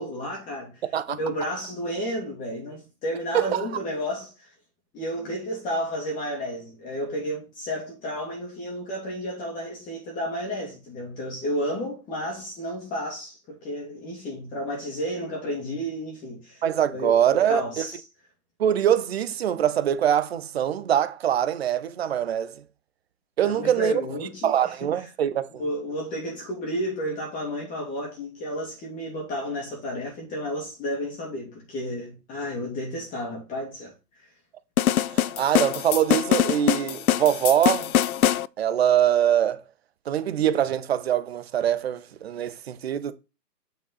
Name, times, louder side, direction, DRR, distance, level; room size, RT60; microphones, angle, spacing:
voice 1, 0.0-4.5 4.9-17.2 17.5-18.0 23.4-24.8 25.6-33.9 34.2-34.3, equal, 15° left, 2.3 m, -32 dB
voice 2, 16.6-17.8 18.6-22.6 23.4-24.0 24.4-25.7 35.1-37.9 38.6-39.6 40.1-43.1, right 10 dB, 40° right, 0.9 m, -23 dB
sound 1, 34.8-38.5, left 11 dB, 60° left, 0.5 m, -23 dB
9.1 x 5.0 x 4.0 m
figure-of-eight pair, 140°, 49 cm